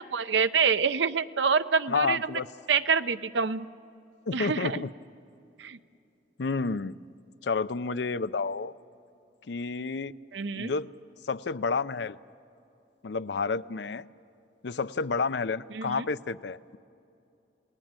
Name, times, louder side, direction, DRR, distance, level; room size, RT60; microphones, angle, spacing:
voice 1, 0.1-2.4 2.7-3.7 4.3-4.8 5.6-5.8 10.3-10.7 15.7-16.0, right 5 dB, 85° right, 12 dB, 0.7 m, -26 dB
voice 2, 1.9-2.5 4.3-4.9 6.4-6.9 7.4-8.7 9.5-10.1 10.5-10.9 11.2-12.2 13.0-14.1 14.6-16.8, left 4 dB, 75° left, 14 dB, 0.5 m, -30 dB
29.0 x 19.0 x 8.9 m, 2.7 s
head